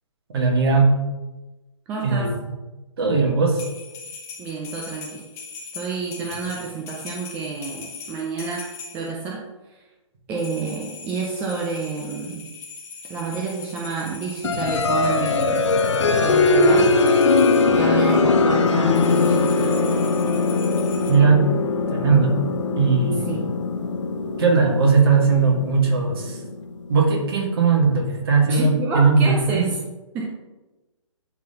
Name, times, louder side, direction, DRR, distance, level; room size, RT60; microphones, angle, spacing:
voice 1, 0.3-0.9 2.0-2.3 3.0-3.6 21.1-21.5 21.9-22.4 22.7-23.3 24.4-26.4 26.9-29.7, right 4 dB, 45° right, -1 dB, 1.9 m, -18 dB
voice 2, 1.9-2.3 4.4-5.2 5.7-8.7 8.9-9.4 9.7-9.8 10.3-12.4 13.1-15.6 16.1-16.9 17.7-19.7 23.2-23.5 28.5-29.8 30.1-30.3, right 4 dB, 10° right, -2 dB, 0.4 m, -29 dB
sound 1, 3.5-9.2 10.4-17.7 18.9-21.1, left 5 dB, 15° left, 0.9 m, -40 dB
sound 2, 14.4-26.9, left 3 dB, 65° left, 0.8 m, -21 dB
11.0 x 3.8 x 2.9 m, 1.1 s
hypercardioid pair, 155°, 17 cm